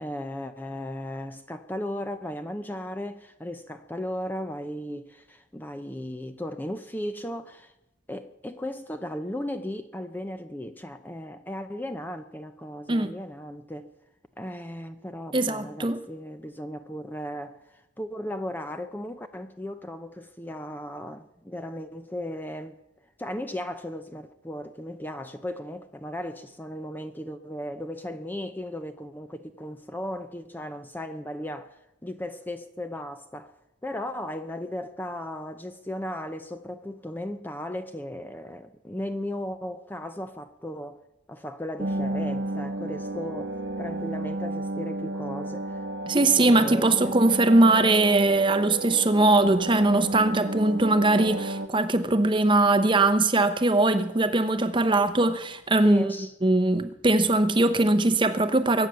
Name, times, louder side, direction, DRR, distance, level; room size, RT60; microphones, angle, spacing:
voice 1, 0.0-7.7 8.1-13.9 14.4-22.8 23.2-31.8 32.0-33.5 33.8-41.0 41.3-45.8 46.2-47.2 55.8-56.3, left 1 dB, 10° left, 0.7 m, -36 dB
voice 2, 15.3-16.0 46.1-56.1 56.4-58.9, right 2 dB, 25° right, 0.8 m, -21 dB
sound 1, 41.8-51.7, right 2 dB, 60° right, 1.1 m, -32 dB
22.5 x 9.1 x 6.8 m
head